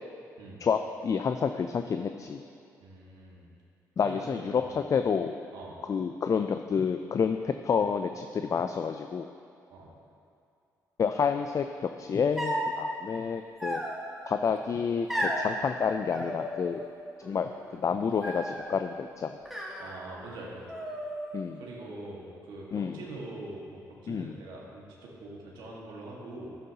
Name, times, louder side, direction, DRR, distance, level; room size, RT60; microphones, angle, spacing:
voice 1, 0.6-2.4 4.0-5.4 5.9-9.3 11.0-13.8 14.3-16.8 17.2-19.3 21.3-21.6 22.7-23.0 24.1-24.4, left 6 dB, 45° left, 7 dB, 0.4 m, -29 dB
voice 2, 2.8-3.5 4.0-4.7 5.5-5.8 9.7-9.9 19.8-20.6 21.5-26.6, right 2 dB, 85° right, -3 dB, 1.7 m, -43 dB
sound 1, 12.4-12.8 13.6-14.3 15.1-15.5 16.1-16.9 17.2-17.8 18.2-18.8 19.5-20.4 20.7-21.4, equal, ahead, 1.7 m, -34 dB
11.5 x 9.4 x 2.9 m, 2.5 s
supercardioid pair, 60°, 8 cm